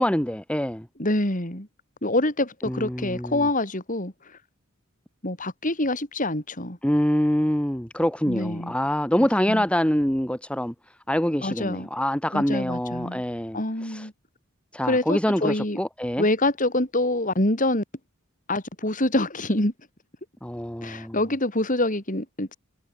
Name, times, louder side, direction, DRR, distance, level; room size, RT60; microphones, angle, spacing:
voice 1, 0.0-0.9 2.7-3.5 6.8-10.7 11.1-14.1 14.7-16.2 20.4-21.2, equal, 5° left, 1.5 m, -25 dB
voice 2, 1.0-1.7 2.0-4.1 5.2-6.8 8.3-8.7 9.5-9.6 11.4-11.9 12.3-13.2 13.5-14.1 14.8-15.8 16.2-17.8 18.5-19.7 20.8-22.5, left 1 dB, 40° left, 5.4 m, -25 dB
head